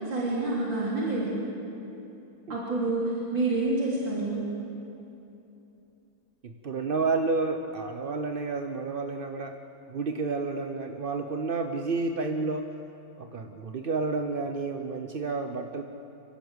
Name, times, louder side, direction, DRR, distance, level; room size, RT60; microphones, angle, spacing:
voice 1, 0.0-1.4 2.5-4.5, right 2 dB, 75° right, -5 dB, 3.9 m, -28 dB
voice 2, 6.4-9.6 9.9-12.7 13.2-15.8, right 3 dB, 50° right, 5 dB, 0.6 m, -30 dB
25.5 x 16.5 x 8.1 m, 2.9 s
omnidirectional pair, 2.0 m